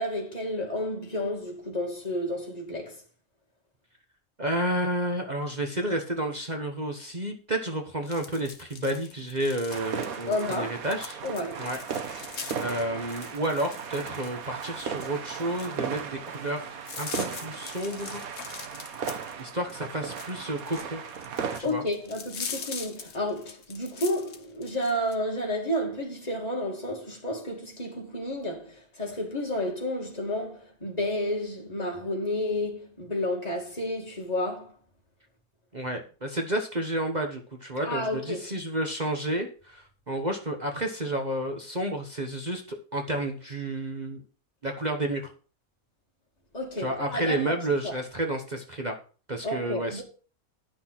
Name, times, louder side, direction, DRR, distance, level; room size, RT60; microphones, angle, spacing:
voice 1, 0.0-3.0 10.3-10.8 11.2-11.7 21.6-34.7 37.8-38.5 46.5-47.9 49.4-50.0, left 1 dB, 25° left, 2.6 m, -31 dB
voice 2, 4.4-11.2 11.6-11.8 12.6-18.2 19.4-21.0 21.6-21.8 35.7-44.2 44.6-45.3 46.8-49.0 49.3-50.0, right 1 dB, 30° right, 1.2 m, -31 dB
sound 1, 8.1-25.1, left 6 dB, 60° left, 1.5 m, -42 dB
sound 2, 9.7-21.6, right 7 dB, 80° right, 1.5 m, -36 dB
10.0 x 6.2 x 5.9 m
omnidirectional pair, 1.5 m